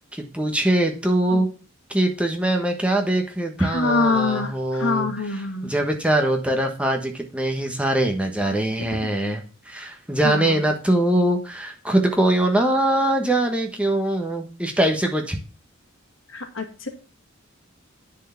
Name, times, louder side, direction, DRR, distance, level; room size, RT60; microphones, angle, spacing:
voice 1, 0.1-1.5 1.9-5.1 5.6-15.4, right 1 dB, 5° right, 2 dB, 1.3 m, -22 dB
voice 2, 3.6-5.7 8.8-9.0 10.2-10.6 16.3-16.9, left 3 dB, 70° left, 4 dB, 1.9 m, -25 dB
10.0 x 4.6 x 5.8 m, 0.36 s
head